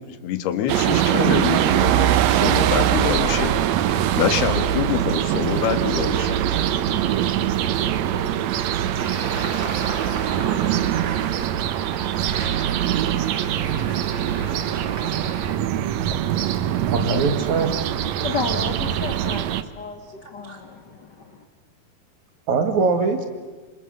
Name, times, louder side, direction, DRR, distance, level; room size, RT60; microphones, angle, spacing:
voice 1, 0.0-3.5 4.2-6.4, left 10 dB, 85° left, 10 dB, 3.5 m, -25 dB
sound 1, 0.7-19.6, right 11 dB, 80° right, 1.5 m, -22 dB
Traffic noise roadway noise, 9.0-15.5, right 4 dB, 40° right, 1.9 m, -34 dB
voice 2, 16.9-17.7 22.5-23.2, right 4 dB, 55° right, 7 dB, 3.0 m, -21 dB
voice 3, 18.2-21.4, left 4 dB, 60° left, 6 dB, 1.0 m, -32 dB
voice 4, 20.4-20.6, right 1 dB, 20° right, 7 dB, 1.5 m, -43 dB
26.5 x 25.5 x 7.8 m, 1.4 s
omnidirectional pair, 4.5 m